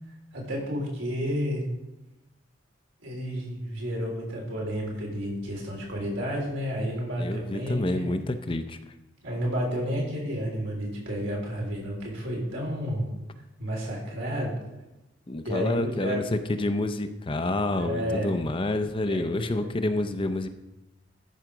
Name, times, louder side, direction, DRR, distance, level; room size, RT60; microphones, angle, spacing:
voice 1, 0.3-1.7 3.0-8.2 9.2-13.1 13.6-14.5 15.4-16.3 17.8-18.4 19.1-19.7, equal, 85° right, -2 dB, 3.7 m, -31 dB
voice 2, 7.2-8.8 15.3-16.2 16.5-20.5, left 2 dB, 25° left, 8 dB, 0.5 m, -28 dB
13.5 x 5.0 x 6.1 m, 0.98 s
head